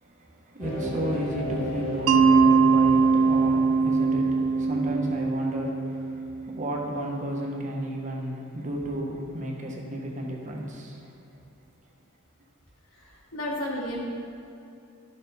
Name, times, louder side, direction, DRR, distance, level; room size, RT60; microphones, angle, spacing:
voice 1, 0.0-11.2, equal, 35° right, -1 dB, 1.2 m, -33 dB
sound 1, 0.6-6.1, right 1 dB, 25° left, 2.0 m, -35 dB
Mallet percussion, 2.1-6.8, right 4 dB, 70° right, 0.5 m, -22 dB
voice 2, 13.0-14.0, left 1 dB, 75° left, -5 dB, 2.3 m, -32 dB
12.0 x 6.8 x 4.1 m, 2.6 s
head